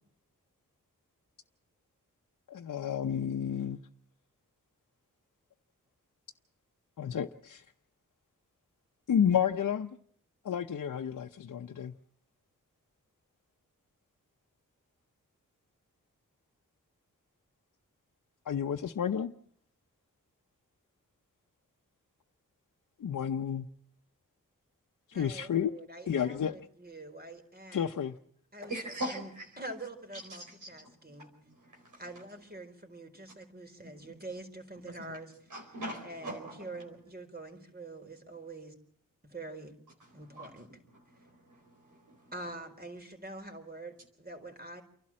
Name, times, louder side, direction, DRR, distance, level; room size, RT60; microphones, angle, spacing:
voice 1, 2.5-3.8 7.0-7.6 9.1-10.0 10.4-11.9 18.5-19.3 23.0-23.7 25.1-25.7 26.1-26.6 27.7-28.2, left 8 dB, 65° left, 0.8 m, -31 dB
voice 2, 25.1-28.0 28.5-28.7 29.1-29.3 29.6-31.3 32.0-35.5 36.0-38.7 39.2-39.7 40.1-40.7 42.3-44.8, right 2 dB, 30° right, 4.5 m, -45 dB
voice 3, 28.6-29.5 30.1-32.0 33.8-34.2 34.8-35.0 35.5-36.7 40.1-40.6 40.9-42.3, right 1 dB, 65° right, 4.6 m, -43 dB
29.0 x 12.0 x 7.5 m
cardioid pair, 45°, 33 cm